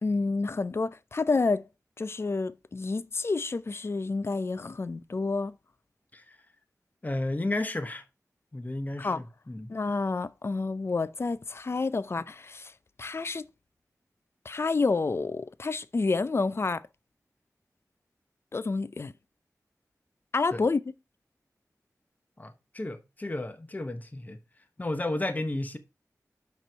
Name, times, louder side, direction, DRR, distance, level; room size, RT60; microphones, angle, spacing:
voice 1, 0.0-1.6 2.0-5.5 9.0-9.2 9.7-12.7 13.0-13.4 14.5-16.8 18.5-19.1 20.3-20.8, left 3 dB, 45° left, 0.4 m, -29 dB
voice 2, 7.0-8.0 8.5-9.7 20.5-20.6 22.4-24.4 24.8-25.8, left 2 dB, 25° left, 1.0 m, -33 dB
6.2 x 5.4 x 4.5 m
wide cardioid pair, 90°, 6 cm